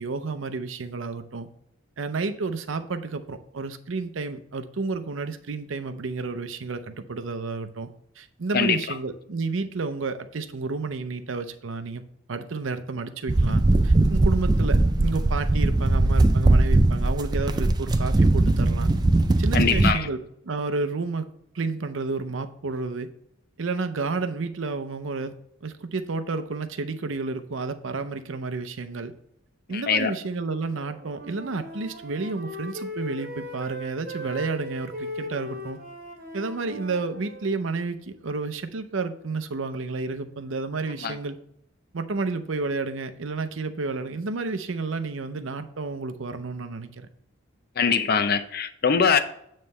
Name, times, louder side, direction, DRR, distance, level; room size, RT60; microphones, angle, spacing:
voice 1, 0.0-1.5 2.0-7.9 8.2-12.0 12.3-18.9 19.4-23.1 23.6-25.3 25.6-29.1 29.7-35.8 36.3-41.4 41.9-47.1, right 3 dB, 70° right, 9 dB, 0.6 m, -31 dB
sound 1, 13.3-19.9, right 2 dB, 20° right, 0.3 m, -20 dB
voice 2, 19.5-20.1 29.7-30.1 41.0-41.1 47.8-49.2, left 6 dB, 50° left, 11 dB, 0.5 m, -22 dB
Wind instrument woodwind instrument, 30.7-37.5, left 1 dB, 50° right, 1.8 m, -38 dB
9.0 x 3.2 x 5.4 m, 0.73 s
head